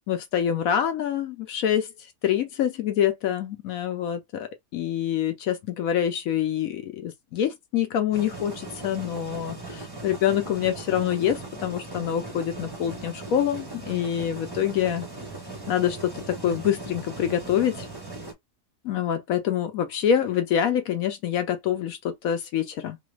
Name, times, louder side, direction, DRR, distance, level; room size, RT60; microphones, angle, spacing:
voice 1, 0.1-15.1 15.7-17.9 18.8-23.0, left 9 dB, 70° left, 0.9 m, -26 dB
sound 1, 8.1-18.3, right 2 dB, 25° right, 0.6 m, -39 dB
3.1 x 2.4 x 3.1 m
omnidirectional pair, 1.7 m